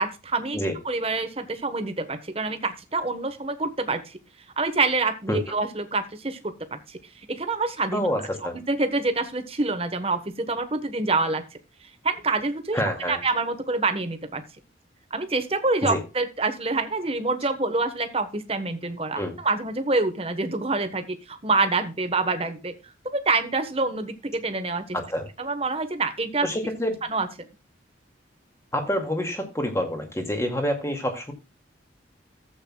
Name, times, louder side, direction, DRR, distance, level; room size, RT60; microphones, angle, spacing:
voice 1, 0.0-0.6 0.8-4.2 4.6-7.0 7.3-8.0 8.7-11.4 12.0-12.8 13.1-14.4 15.1-22.8 23.0-25.0 25.4-26.5 27.0-27.3, right 3 dB, 30° right, 8 dB, 1.2 m, -26 dB
voice 2, 7.9-8.6 12.7-13.2 15.8-16.0 19.2-19.4 24.9-25.3 26.4-27.0 28.7-31.3, equal, 15° left, 4 dB, 2.2 m, -27 dB
15.5 x 8.2 x 2.3 m, 0.30 s
head